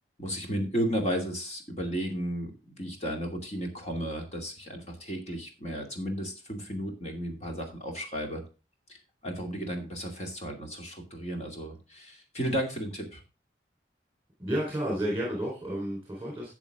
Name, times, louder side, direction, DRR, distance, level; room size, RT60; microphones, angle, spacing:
voice 1, 0.2-8.4 8.9-9.0 9.2-13.2, equal, 35° left, 2 dB, 2.5 m, -34 dB
voice 2, 14.4-16.5, equal, 10° right, -3 dB, 4.0 m, -31 dB
12.5 x 7.3 x 3.7 m, 0.31 s
head